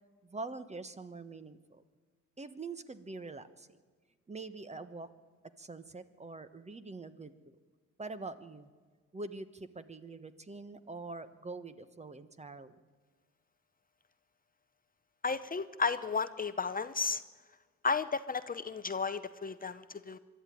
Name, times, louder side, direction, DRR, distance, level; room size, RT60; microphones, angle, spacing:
voice 1, 0.2-1.8 2.4-3.7 4.3-5.1 5.6-7.6 8.0-8.7 9.1-12.8, right 3 dB, 20° right, 12 dB, 1.2 m, -44 dB
voice 2, 15.2-17.2 17.8-20.2, left 4 dB, 30° left, 12 dB, 0.7 m, -33 dB
23.5 x 12.5 x 9.3 m, 1.5 s
cardioid pair, 90°, 30 cm